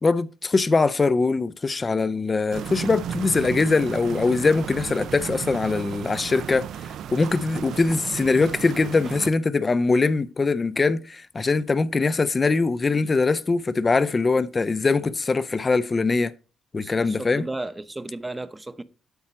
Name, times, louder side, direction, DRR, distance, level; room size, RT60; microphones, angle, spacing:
voice 1, 0.0-6.7 7.1-16.3 16.7-17.4, left 3 dB, 30° left, 0.5 m, -22 dB
sound 1, 2.5-9.3, right 9 dB, 75° right, 0.4 m, -34 dB
voice 2, 16.8-18.8, right 2 dB, 15° right, 0.8 m, -35 dB
8.2 x 4.3 x 6.2 m
cardioid pair, 90°, 0 cm